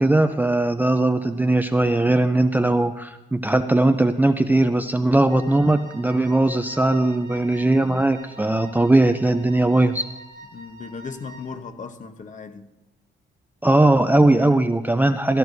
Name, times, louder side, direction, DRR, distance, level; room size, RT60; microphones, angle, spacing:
voice 1, 0.0-10.1 13.6-15.4, right 2 dB, 10° right, 0.5 m, -19 dB
Wind instrument woodwind instrument, 5.3-11.6, right 1 dB, 80° right, 2.3 m, -46 dB
voice 2, 10.5-12.7, left 5 dB, 40° left, 1.0 m, -36 dB
16.5 x 12.5 x 2.7 m
cardioid pair, 90°, 20 cm